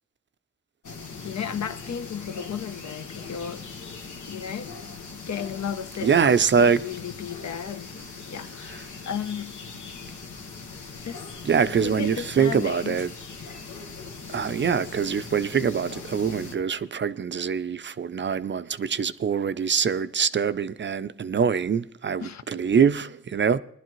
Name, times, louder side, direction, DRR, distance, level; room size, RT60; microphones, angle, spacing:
sound 1, 0.8-16.6, left 4 dB, 90° left, 1.4 m, -40 dB
voice 1, 1.2-3.6 4.3-4.7 5.1-9.6 11.0-11.2 11.7-13.0 22.2-22.6, left 7 dB, 70° left, 0.7 m, -34 dB
voice 2, 6.0-6.8 8.7-8.8 11.4-13.1 14.3-23.6, right 6 dB, 40° right, 0.4 m, -24 dB
19.0 x 11.5 x 3.0 m
wide cardioid pair, 145°, 29 cm